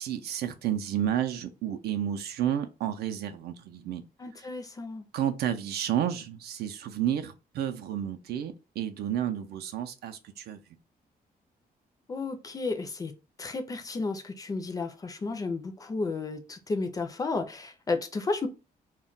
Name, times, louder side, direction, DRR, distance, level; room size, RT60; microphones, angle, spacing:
voice 1, 0.0-4.0 4.3-4.5 5.1-10.8, right 10 dB, 85° right, 0.4 m, -31 dB
voice 2, 4.2-5.0 12.1-13.1 13.4-18.5, left 3 dB, 20° left, 0.3 m, -32 dB
2.2 x 2.1 x 3.7 m
cardioid pair, 155°, 16 cm